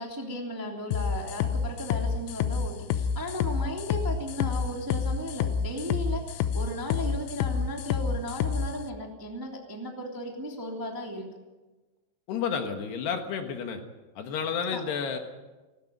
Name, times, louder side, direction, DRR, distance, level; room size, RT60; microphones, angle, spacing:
voice 1, 0.0-11.2 14.7-14.8, equal, 10° right, 1 dB, 1.5 m, -36 dB
sound 1, 0.9-8.7, left 7 dB, 90° left, 3.4 m, -28 dB
voice 2, 12.3-13.8 14.2-15.2, left 6 dB, 70° left, 5 dB, 3.3 m, -31 dB
18.5 x 17.0 x 9.1 m, 1.2 s
omnidirectional pair, 5.4 m